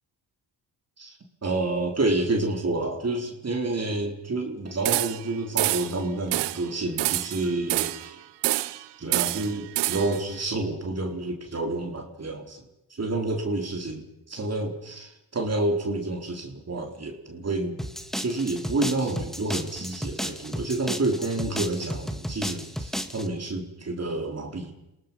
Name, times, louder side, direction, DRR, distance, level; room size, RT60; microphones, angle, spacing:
voice 1, 1.4-8.2 9.0-12.6 12.9-17.8 18.2-24.7, right 2 dB, 35° right, 3 dB, 4.0 m, -29 dB
sound 1, 4.9-5.3 5.6-6.0 6.3-6.6 7.0-8.1 8.4-8.8 9.1-10.2, right 18 dB, 85° right, 0.8 m, -27 dB
sound 2, 17.8-23.3, equal, ahead, 2.1 m, -33 dB
28.5 x 18.5 x 5.6 m, 0.89 s
supercardioid pair, 55°, 41 cm